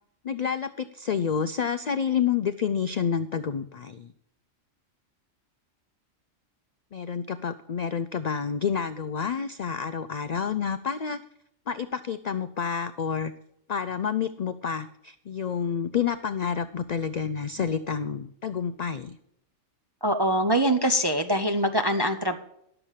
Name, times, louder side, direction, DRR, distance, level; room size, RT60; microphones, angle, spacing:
voice 1, 0.2-4.1 6.9-11.2 11.7-13.3 13.7-19.2, left 7 dB, 85° left, 10 dB, 0.3 m, -29 dB
voice 2, 20.0-22.4, equal, 40° right, 5 dB, 0.3 m, -23 dB
11.0 x 6.8 x 7.3 m, 0.76 s
omnidirectional pair, 1.3 m